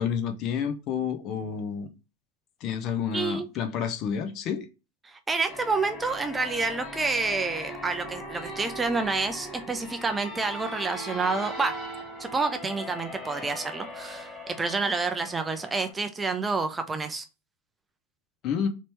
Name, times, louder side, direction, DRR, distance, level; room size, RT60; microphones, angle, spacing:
voice 1, 0.0-1.9 2.6-4.7 18.4-18.7, left 7 dB, 35° left, 0.7 m, -29 dB
voice 2, 3.1-3.5 5.0-11.7 12.2-17.2, right 4 dB, 15° right, 0.5 m, -29 dB
sound 1, 5.5-15.9, left 1 dB, 15° left, 1.2 m, -39 dB
4.1 x 3.0 x 3.3 m
figure-of-eight pair, 90°, 0 cm